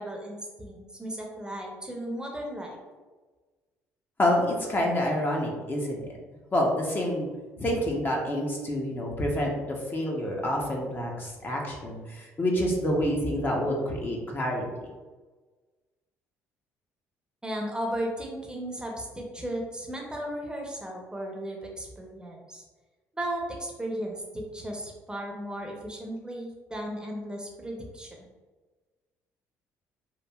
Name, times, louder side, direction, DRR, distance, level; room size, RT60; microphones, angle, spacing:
voice 1, 0.0-2.8 17.4-22.6 23.1-28.1, right 1 dB, 15° right, 0 dB, 0.7 m, -35 dB
voice 2, 4.2-6.2 6.5-7.3 7.6-14.6, left 1 dB, 30° left, -1 dB, 0.6 m, -28 dB
3.1 x 2.4 x 2.2 m, 1.3 s
hypercardioid pair, 60°, 7 cm